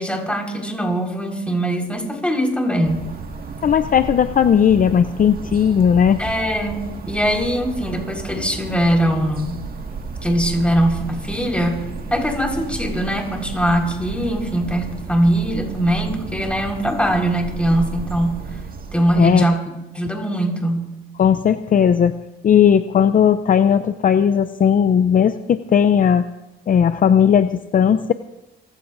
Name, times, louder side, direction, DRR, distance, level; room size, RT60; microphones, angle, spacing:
voice 1, 0.0-3.0 6.2-9.6 10.2-11.8 12.1-18.3 18.9-19.6 19.9-20.8, right 1 dB, 5° left, 0 dB, 4.6 m, -21 dB
sound 1, 2.8-19.5, right 4 dB, 50° right, 1.9 m, -33 dB
voice 2, 3.6-6.2 19.2-19.4 21.2-22.1 22.4-26.2 26.7-28.1, left 8 dB, 45° left, 11 dB, 0.6 m, -16 dB
28.5 x 15.5 x 2.6 m, 0.99 s
cardioid pair, 90°, 20 cm